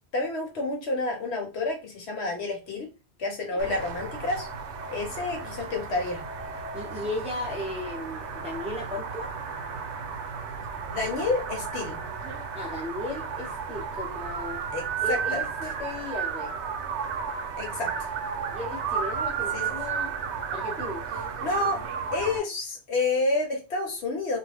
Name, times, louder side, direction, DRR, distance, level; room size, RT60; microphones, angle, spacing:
voice 1, 0.1-2.9 3.2-4.5 4.9-6.2 10.9-12.0 14.7-15.4 17.6-18.1 19.5-19.7 21.4-21.8 22.1-24.4, left 2 dB, 75° left, 1.1 m, -29 dB
sound 1, 3.6-22.4, right 6 dB, 85° right, 0.9 m, -33 dB
voice 2, 6.7-9.3 12.5-14.6 15.0-16.5 18.5-20.1 20.5-21.0, left 2 dB, 10° right, 0.4 m, -36 dB
2.4 x 2.1 x 3.2 m
omnidirectional pair, 1.1 m